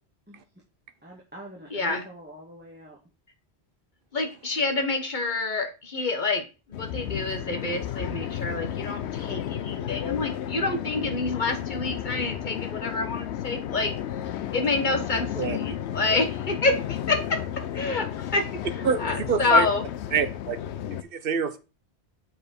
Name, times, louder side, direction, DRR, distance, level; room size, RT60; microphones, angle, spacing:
voice 1, 1.0-3.0 14.6-15.0, right 1 dB, 10° right, 1.6 m, -45 dB
voice 2, 1.7-2.0 4.1-13.9 14.5-17.4 17.7-18.4 18.8-19.8, left 3 dB, 45° left, 1.3 m, -27 dB
sound 1, 6.7-21.0, left 10 dB, 85° left, 0.9 m, -33 dB
voice 3, 18.8-19.7 20.1-20.6 21.1-21.6, right 6 dB, 60° right, 1.0 m, -26 dB
6.7 x 4.3 x 5.3 m
omnidirectional pair, 1.1 m